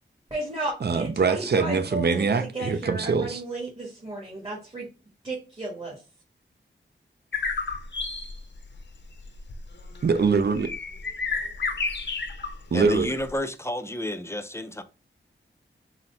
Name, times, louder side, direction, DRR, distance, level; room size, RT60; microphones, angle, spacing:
voice 1, 0.3-4.9 5.2-6.0, right 2 dB, 30° right, 1.4 m, -34 dB
voice 2, 0.8-3.4 10.0-10.7 12.7-13.1, right 5 dB, 55° right, 0.5 m, -23 dB
sound 1, 7.3-13.4, left 4 dB, 60° left, 0.7 m, -32 dB
voice 3, 12.7-14.8, left 1 dB, 15° left, 0.4 m, -30 dB
3.9 x 2.1 x 4.3 m
wide cardioid pair, 85°, 20 cm